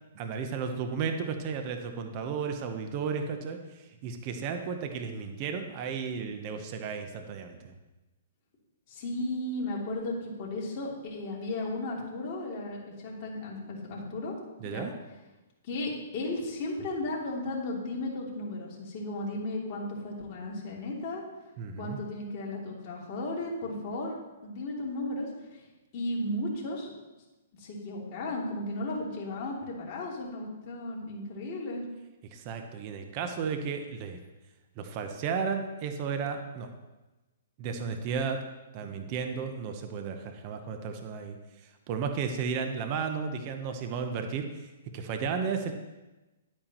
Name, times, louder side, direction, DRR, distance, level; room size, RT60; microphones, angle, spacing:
voice 1, 0.1-7.7 14.6-14.9 21.6-22.0 32.3-34.2 34.8-36.7 37.6-38.5 38.7-41.4 41.9-45.7, right 6 dB, 35° right, 5 dB, 0.9 m, -34 dB
voice 2, 8.9-14.3 14.6-14.9 15.6-21.2 21.8-25.3 25.9-26.9 27.6-31.8, left 2 dB, 35° left, -4 dB, 2.8 m, -35 dB
11.0 x 8.9 x 3.0 m, 1.1 s
hypercardioid pair, 145°, 0 cm